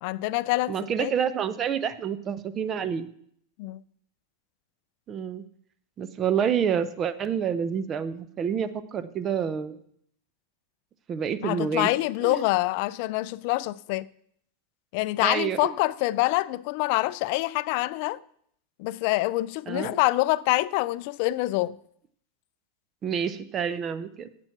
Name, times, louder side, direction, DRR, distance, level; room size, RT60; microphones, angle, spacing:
voice 1, 0.0-1.1 3.6-3.8 11.4-14.1 14.9-18.2 18.8-21.8, left 19 dB, 55° left, 0.4 m, -26 dB
voice 2, 0.7-3.1 5.1-5.4 6.0-9.8 11.1-11.9 12.2-12.4 15.2-15.7 19.7-20.0 23.0-24.3, right 7 dB, 25° right, 0.7 m, -28 dB
9.0 x 7.8 x 5.9 m
supercardioid pair, 145°, 0 cm